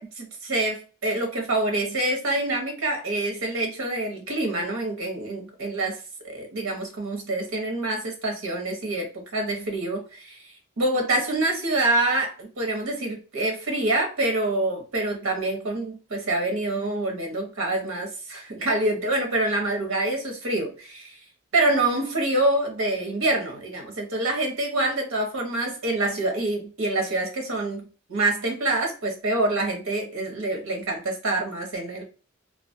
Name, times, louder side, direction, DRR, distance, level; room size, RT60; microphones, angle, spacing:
voice 1, 0.0-5.9 6.2-9.1 9.3-10.4 10.8-21.2 21.5-27.8 28.1-32.0, right 2 dB, 80° right, 0.9 m, -26 dB
2.3 x 2.3 x 2.5 m
head